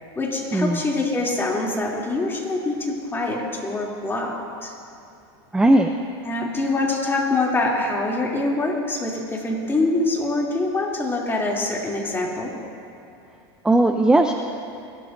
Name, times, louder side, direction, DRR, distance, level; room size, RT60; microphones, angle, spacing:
voice 1, 0.1-4.3 4.6-4.7 6.2-12.5, left 2 dB, 15° left, -3 dB, 3.0 m, -24 dB
voice 2, 5.5-5.9 13.6-14.3, right 1 dB, 5° right, 5 dB, 0.6 m, -17 dB
29.0 x 12.5 x 2.7 m, 2.7 s
hypercardioid pair, 110°, 14 cm